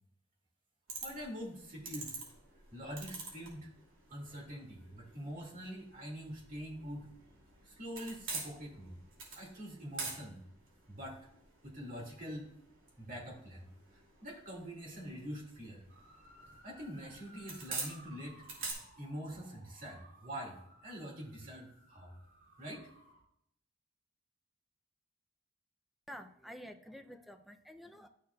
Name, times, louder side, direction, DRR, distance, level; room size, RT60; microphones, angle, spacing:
sound 1, 0.9-18.7, right 3 dB, 80° right, 2.6 m, -48 dB
voice 1, 1.0-2.2 2.7-3.7 4.1-7.1 7.6-9.0 9.3-10.4 10.9-11.2 11.6-12.5 13.0-13.7 14.2-15.8 16.6-22.1 22.6-22.9, equal, 45° right, -1 dB, 2.2 m, -45 dB
sound 2, 15.9-23.2, right 1 dB, 65° right, 2.8 m, -60 dB
voice 2, 26.1-28.1, equal, ahead, 6 dB, 0.4 m, -50 dB
11.5 x 6.6 x 2.3 m, 0.75 s
head